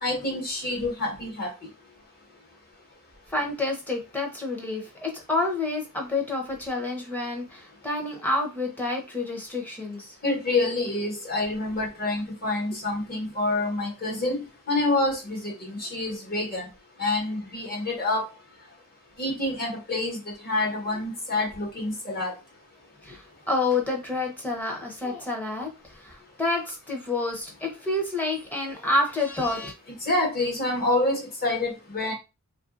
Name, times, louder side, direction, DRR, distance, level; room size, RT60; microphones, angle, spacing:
voice 1, 0.0-1.7 10.2-16.7 17.0-18.2 19.2-22.4 30.0-32.1, left 2 dB, 45° left, -1 dB, 1.3 m, -27 dB
voice 2, 3.3-10.1 23.0-29.7, left 2 dB, 10° left, 1 dB, 0.7 m, -29 dB
3.1 x 2.6 x 2.5 m, 0.26 s
head